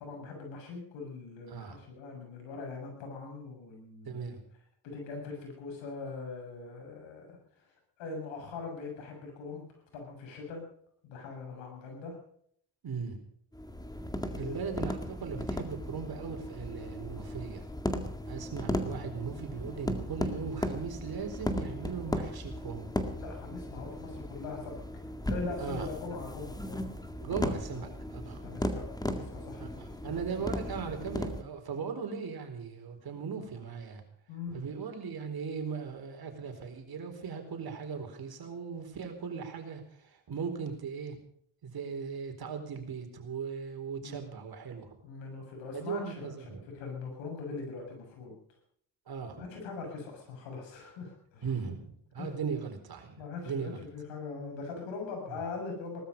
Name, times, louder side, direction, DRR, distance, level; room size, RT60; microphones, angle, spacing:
voice 1, 0.0-4.2 4.8-7.4 8.0-9.7 9.9-10.6 11.0-12.2 14.2-14.6 23.2-24.8 25.3-26.9 27.3-27.4 27.7-30.1 34.3-34.6 44.0-44.2 45.0-48.3 49.4-51.5 52.2-52.3 53.2-56.0, left 4 dB, 85° left, 1 dB, 6.9 m, -41 dB
voice 2, 4.0-4.4 12.8-13.2 14.4-17.7 18.3-22.9 25.6-25.9 27.2-28.4 29.6-34.0 34.5-41.2 41.6-45.0 45.7-46.6 49.1-49.5 51.4-51.9 52.1-53.8, right 6 dB, 55° right, 5 dB, 4.2 m, -38 dB
sound 1, 13.5-31.4, left 1 dB, 10° left, 2.0 m, -36 dB
19.0 x 13.0 x 5.4 m, 0.64 s
supercardioid pair, 70°, 44 cm